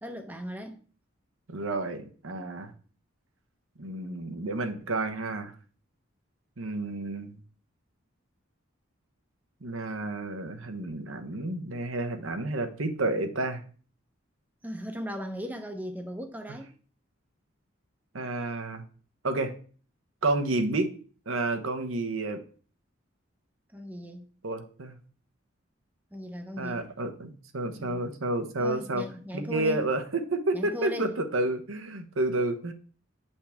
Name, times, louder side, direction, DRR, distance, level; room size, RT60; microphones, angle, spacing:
voice 1, 0.0-0.8 14.6-16.7 23.7-24.3 26.1-26.8 27.7-28.0 28.6-29.8 30.5-31.1, equal, 10° right, 0.8 m, -37 dB
voice 2, 1.5-2.7 3.8-5.5 6.6-7.3 9.6-13.6 18.1-18.8 19.2-19.5 20.2-20.9 21.3-22.4 24.4-24.9 26.6-29.0 29.3-32.7, right 2 dB, 80° right, 1.0 m, -30 dB
8.3 x 5.5 x 3.5 m
head